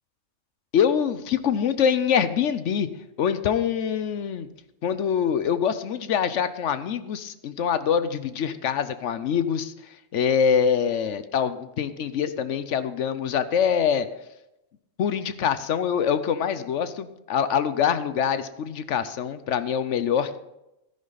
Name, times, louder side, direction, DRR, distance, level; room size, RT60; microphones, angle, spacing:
voice 1, 0.7-2.9 3.2-4.5 4.8-9.7 10.1-14.1 15.0-20.4, left 7 dB, 70° left, 12 dB, 1.0 m, -24 dB
13.0 x 10.5 x 4.0 m, 0.89 s
omnidirectional pair, 1.3 m